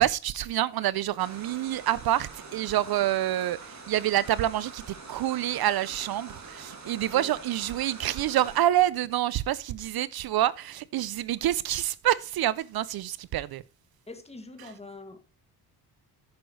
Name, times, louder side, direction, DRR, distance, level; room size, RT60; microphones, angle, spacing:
voice 1, 0.0-13.6 14.6-14.7, right 13 dB, 65° right, 0.5 m, -27 dB
sound 1, 1.2-8.6, right 4 dB, 45° right, 2.5 m, -45 dB
voice 2, 14.1-15.2, left 3 dB, 15° left, 2.1 m, -44 dB
10.5 x 9.3 x 3.1 m
cardioid pair, 125°, 40 cm